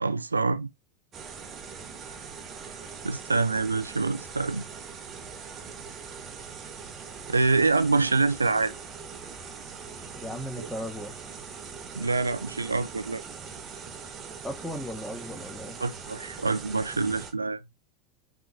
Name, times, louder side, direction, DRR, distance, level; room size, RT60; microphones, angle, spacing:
voice 1, 0.0-0.7 3.0-4.6 7.3-8.7 10.6-10.7 11.9-13.2 15.8-17.6, right 3 dB, 80° right, 0.3 m, -26 dB
sound 1, 1.1-17.3, right 6 dB, 30° right, 1.0 m, -42 dB
voice 2, 10.1-11.1 14.4-15.8, equal, 5° left, 1.4 m, -36 dB
5.7 x 3.6 x 2.6 m
figure-of-eight pair, 85°, 0 cm